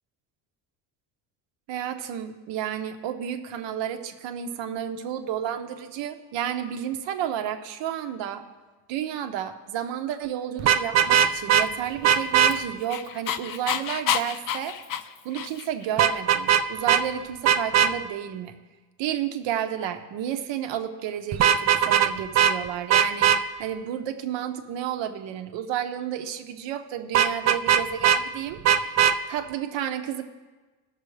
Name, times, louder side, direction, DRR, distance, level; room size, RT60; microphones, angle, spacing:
voice 1, 1.7-8.4 8.9-14.8 15.2-18.6 19.0-23.3 23.6-29.0 29.3-30.2, right 10 dB, 80° right, 7 dB, 1.1 m, -31 dB
Vehicle horn car horn honking, 10.6-11.6 12.0-12.5 16.0-16.6 16.9-17.0 17.4-17.9 21.3-22.1 22.3-22.5 22.9-23.4 27.1-28.2 28.6-29.1, right 9 dB, 40° right, 0.5 m, -19 dB
Dog, 12.0-15.9, left 9 dB, 50° left, 0.6 m, -30 dB
18.5 x 6.7 x 3.3 m, 1.3 s
cardioid pair, 115°, 44 cm